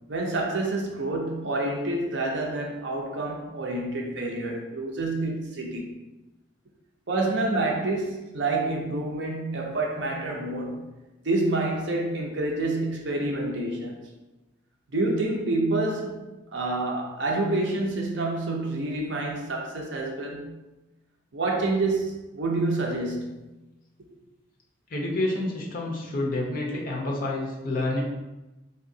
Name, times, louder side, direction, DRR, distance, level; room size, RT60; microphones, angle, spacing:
voice 1, 0.1-5.9 7.1-11.0 11.2-14.0 14.9-16.2 16.5-20.6 21.3-23.5, right 2 dB, 60° right, 0.6 m, -28 dB
voice 2, 24.9-28.0, left 2 dB, 45° left, 0.7 m, -28 dB
3.5 x 2.7 x 2.6 m
head